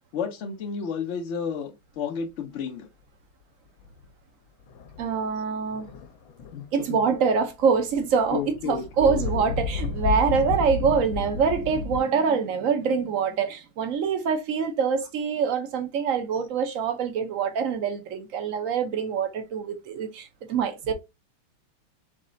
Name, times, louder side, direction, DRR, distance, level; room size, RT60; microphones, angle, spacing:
voice 1, 0.1-2.9 6.5-7.0 8.3-9.4, left 6 dB, 65° left, 0.7 m, -32 dB
sound 1, 3.8-4.1 4.7-5.2 5.7-6.9 7.2-12.0, left 5 dB, 80° left, 1.5 m, -31 dB
voice 2, 5.0-5.9 6.7-20.9, right 6 dB, 60° right, 0.9 m, -25 dB
4.1 x 3.2 x 3.7 m
omnidirectional pair, 2.2 m